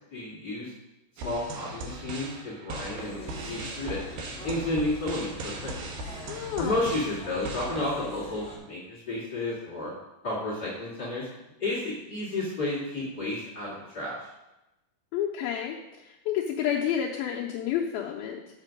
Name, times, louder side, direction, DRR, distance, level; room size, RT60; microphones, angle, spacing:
voice 1, 0.1-0.7 1.2-4.0 4.4-5.7 6.6-9.9 10.2-11.3 11.6-14.3, left 2 dB, 35° left, -6 dB, 2.0 m, -31 dB
sound 1, 1.2-7.9, right 2 dB, 70° right, 2.7 m, -39 dB
sound 2, 3.0-8.6, left 1 dB, ahead, 1.5 m, -44 dB
voice 2, 6.2-6.8 15.1-18.4, left 9 dB, 80° left, -2 dB, 2.4 m, -30 dB
7.4 x 7.3 x 5.2 m, 0.97 s
omnidirectional pair, 4.5 m